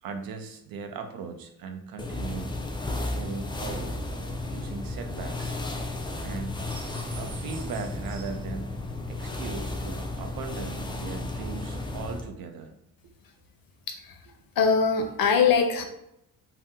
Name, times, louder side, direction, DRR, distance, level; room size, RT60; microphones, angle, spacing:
voice 1, 0.0-2.6 3.1-4.0 4.5-5.6 6.2-8.7 9.1-12.7, right 5 dB, 65° right, 6 dB, 0.6 m, -38 dB
Curtsie in a satin dress, 2.0-12.3, left 2 dB, 15° left, 0.3 m, -33 dB
voice 2, 13.9-14.2 14.6-15.8, left 5 dB, 65° left, 5 dB, 0.7 m, -22 dB
2.7 x 2.1 x 3.6 m, 0.78 s
cardioid pair, 70°, 37 cm